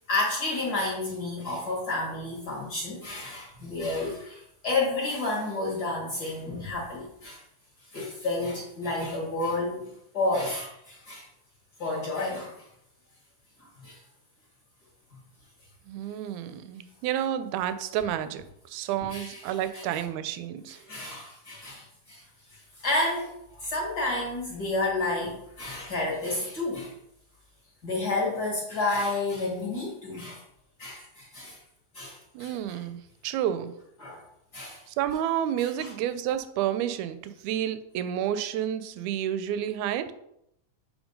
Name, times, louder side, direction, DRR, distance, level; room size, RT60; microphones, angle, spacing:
voice 1, 0.1-7.4 7.9-9.8 10.1-11.2 11.8-12.6 13.6-14.0 19.1-19.8 20.9-22.2 22.5-23.3 23.6-26.9 27.8-30.4 30.8-31.6 31.9-32.8 34.0-34.2 34.5-34.8 35.6-35.9, left 2 dB, 45° left, -4 dB, 1.4 m, -31 dB
voice 2, 15.9-20.8 32.3-33.7 34.9-40.1, right 10 dB, 80° right, 11 dB, 1.8 m, -30 dB
7.1 x 3.3 x 5.2 m, 0.77 s
omnidirectional pair, 3.5 m